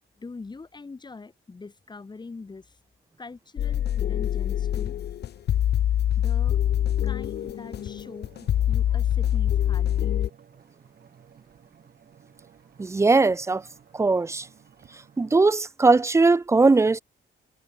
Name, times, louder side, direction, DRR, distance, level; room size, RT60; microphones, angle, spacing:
voice 1, 0.2-2.8 3.2-5.0 6.2-6.6 7.0-8.3 8.7-10.1, left 4 dB, 20° left, 2.2 m, -43 dB
sound 1, 3.6-10.3, left 11 dB, 50° left, 0.6 m, -25 dB
sound 2, 7.3-15.4, right 7 dB, 45° right, 4.8 m, -55 dB
voice 2, 12.8-13.6 13.9-14.5 15.2-17.0, right 3 dB, 15° right, 0.4 m, -20 dB
wide cardioid pair, 175°, 21 cm